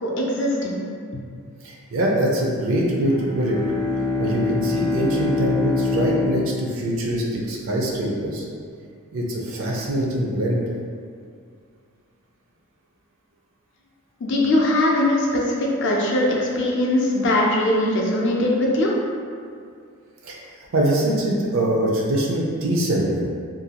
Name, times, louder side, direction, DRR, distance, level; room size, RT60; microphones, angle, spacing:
voice 1, 0.0-0.8 1.1-1.2 14.2-18.9, left 1 dB, 55° left, -2 dB, 0.4 m, -21 dB
voice 2, 1.6-3.6 4.2-8.4 9.1-10.6 20.2-20.4 20.7-23.3, right 1 dB, 60° right, -2 dB, 0.5 m, -23 dB
Bowed string instrument, 2.9-7.6, left 3 dB, 80° right, 0.9 m, -25 dB
2.5 x 2.3 x 2.8 m, 2.3 s
head